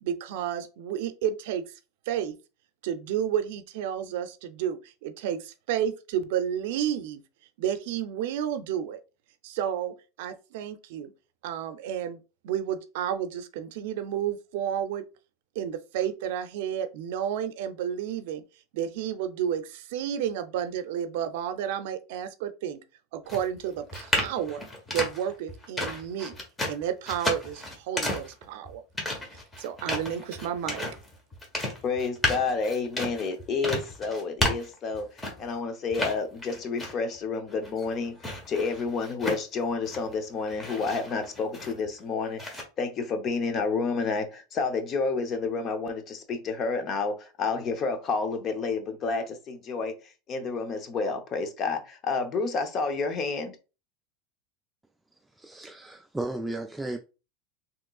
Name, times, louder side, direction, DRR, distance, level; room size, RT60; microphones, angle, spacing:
voice 1, 0.0-1.7 2.1-2.3 2.8-7.2 7.6-9.0 9.4-11.1 11.4-12.2 12.4-15.0 15.6-18.4 18.7-22.8 23.1-24.6 24.9-26.4 26.7-28.8 29.6-30.8, right 9 dB, 70° right, 0.5 m, -31 dB
sound 1, 23.3-35.6 35.9-37.2 37.5-40.1 40.5-42.0 42.4-42.6, left 1 dB, 15° left, 1.1 m, -32 dB
voice 2, 31.8-50.0 50.3-53.6, left 4 dB, 35° left, 0.7 m, -30 dB
voice 3, 55.3-57.0, right 2 dB, 5° right, 0.3 m, -34 dB
3.6 x 2.9 x 2.3 m
supercardioid pair, 120°, 0 cm